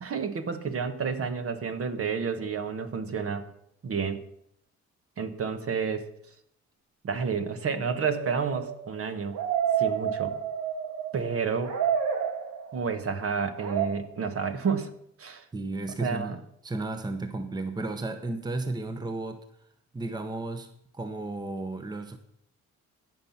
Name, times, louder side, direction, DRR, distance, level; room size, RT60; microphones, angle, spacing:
voice 1, 0.0-3.5 3.8-4.2 5.2-6.1 7.0-9.4 9.8-10.4 11.1-11.7 12.7-14.9 15.2-15.4 16.0-16.4, right 6 dB, 50° right, 9 dB, 1.3 m, -30 dB
sound 1, 7.7-11.3 11.6-12.9 13.6-13.9, right 8 dB, 70° right, 1.7 m, -29 dB
voice 2, 15.5-16.4 16.6-19.4 19.9-20.7 20.9-22.2, right 2 dB, 15° right, 8 dB, 0.9 m, -33 dB
16.5 x 5.8 x 5.8 m, 0.73 s
cardioid pair, 90°, 30 cm